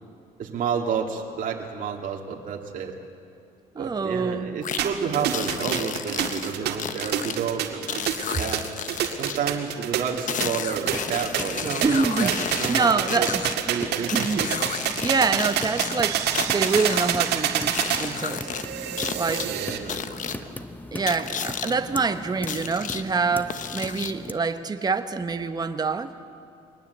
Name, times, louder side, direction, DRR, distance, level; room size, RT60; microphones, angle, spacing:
voice 1, 0.4-2.9 3.8-8.0 8.4-8.7 9.2-12.9 13.2-13.3 13.7-14.5 19.4-20.5, right 7 dB, 50° right, 0 dB, 2.3 m, -30 dB
voice 2, 3.7-4.5 11.8-12.4 12.7-13.4 14.1-14.4 15.0-18.5 19.1-19.5 20.9-26.1, right 4 dB, 25° right, 8 dB, 1.1 m, -26 dB
sound 1, 4.6-4.8 5.3-7.4 7.9-9.4 10.3-13.5 14.1-15.1 15.4-17.1 17.7-18.6 19.0-19.5 19.9-20.4 21.1-21.7 22.5-23.0 23.5-24.3, left 8 dB, 50° left, 1.1 m, -32 dB
sound 2, 4.8-19.8, right 10 dB, 75° right, 2.0 m, -28 dB
sound 3, 10.6-24.3, left 2 dB, 10° left, 0.8 m, -39 dB
23.0 x 19.5 x 8.1 m, 2.4 s
cardioid pair, 110°, 17 cm